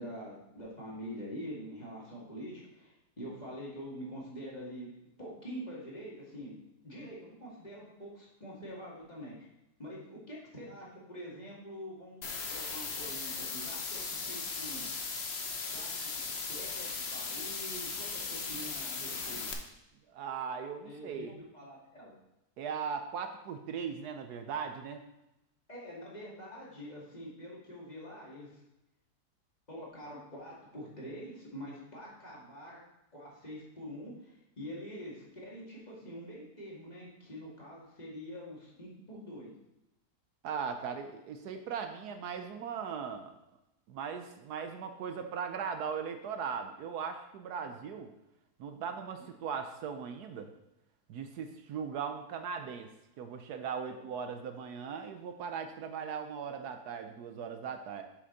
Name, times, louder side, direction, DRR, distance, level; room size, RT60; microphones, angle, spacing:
voice 1, 0.0-4.9 5.2-6.6 6.8-9.4 9.8-12.2 12.5-14.9 15.7-16.0 16.5-19.5 20.8-22.2 25.7-28.6 29.7-32.8 33.1-39.5 53.8-54.0, equal, 25° left, -6 dB, 2.4 m, -45 dB
sound 1, 12.2-19.5, left 4 dB, 45° left, 1.0 m, -38 dB
voice 2, 20.1-21.3 22.6-25.0 40.4-43.3 43.9-48.1 48.6-50.5 51.1-52.9 53.2-58.0, right 6 dB, 75° right, 7 dB, 1.2 m, -38 dB
7.7 x 6.5 x 4.0 m, 0.91 s
omnidirectional pair, 1.8 m